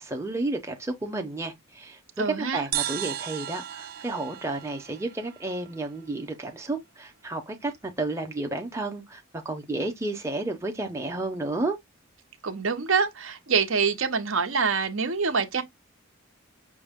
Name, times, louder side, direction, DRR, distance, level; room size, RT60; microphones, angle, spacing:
voice 1, 0.0-2.0 2.5-11.8, right 2 dB, 15° right, 0.7 m, -32 dB
voice 2, 2.2-2.6 12.4-15.6, right 5 dB, 65° right, 0.9 m, -25 dB
sound 1, 2.7-6.2, right 12 dB, 40° right, 0.3 m, -35 dB
6.1 x 2.2 x 3.5 m
head